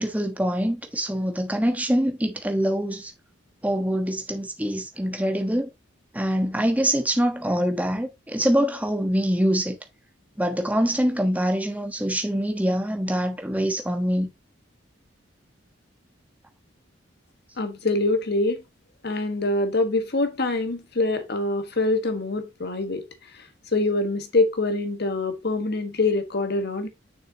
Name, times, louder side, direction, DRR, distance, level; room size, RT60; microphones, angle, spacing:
voice 1, 0.0-3.1 3.6-5.7 6.1-9.8 10.4-14.3, equal, 10° right, 1.2 m, -24 dB
voice 2, 17.6-18.6 19.0-23.0 23.3-23.4 23.7-26.9, left 2 dB, 55° left, 1.4 m, -24 dB
6.6 x 6.4 x 2.9 m
head